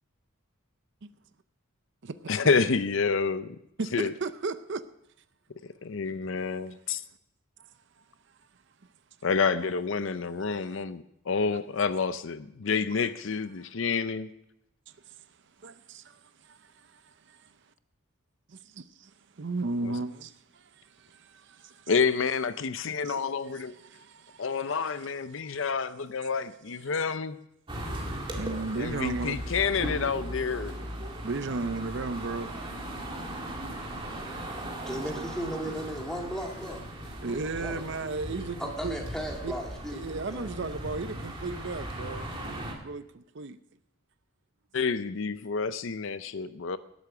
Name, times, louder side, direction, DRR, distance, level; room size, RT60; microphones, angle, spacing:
voice 1, 2.3-3.5 3.9-4.1 5.8-7.0 9.2-14.3 19.8-19.9 21.9-23.7 24.4-27.4 28.8-30.7 44.7-46.8, left 5 dB, 60° left, 0.6 m, -28 dB
voice 2, 3.8-4.8 15.0-15.1 15.6-17.5 19.4-21.9 23.0-24.7 25.4-25.6 28.3-29.4 31.2-32.5 37.2-39.0 39.4-39.5 39.9-43.6, right 3 dB, 55° right, 0.6 m, -35 dB
sound 1, 27.7-42.7, right 1 dB, 25° right, 2.0 m, -38 dB
voice 3, 34.8-36.8 37.2-37.8 38.6-40.7, equal, 5° left, 2.1 m, -36 dB
18.5 x 8.3 x 6.0 m
head